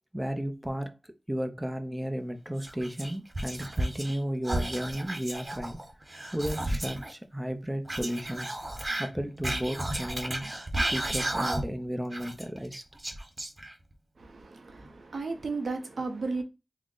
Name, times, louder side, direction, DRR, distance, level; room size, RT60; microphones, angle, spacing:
voice 1, 0.1-0.9 1.3-5.8 6.3-8.6 9.0-12.8, equal, 10° right, 0.6 m, -34 dB
Whispering, 2.6-4.2 4.4-7.1 7.9-11.8 12.1-13.9, right 1 dB, 35° right, 0.9 m, -33 dB
voice 2, 14.2-16.4, right 3 dB, 75° right, 0.6 m, -34 dB
3.6 x 2.0 x 3.7 m
cardioid pair, 50°, 0 cm